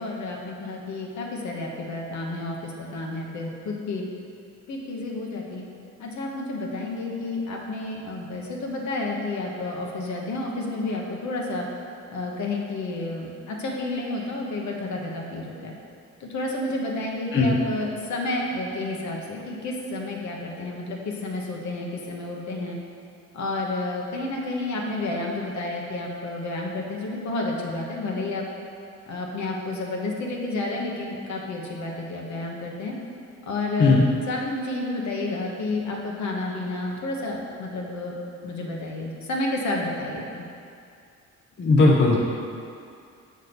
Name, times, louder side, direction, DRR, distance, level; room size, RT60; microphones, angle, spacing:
voice 1, 0.0-4.0 4.7-5.6 6.0-11.7 12.1-15.7 16.2-22.8 23.3-28.4 29.1-32.9 33.5-34.0 34.3-38.1 38.4-40.4, left 2 dB, 70° left, -1 dB, 1.1 m, -30 dB
voice 2, 41.6-42.2, left 3 dB, 40° left, -1 dB, 0.7 m, -17 dB
6.4 x 3.5 x 6.0 m, 2.5 s
cardioid pair, 90°, 30 cm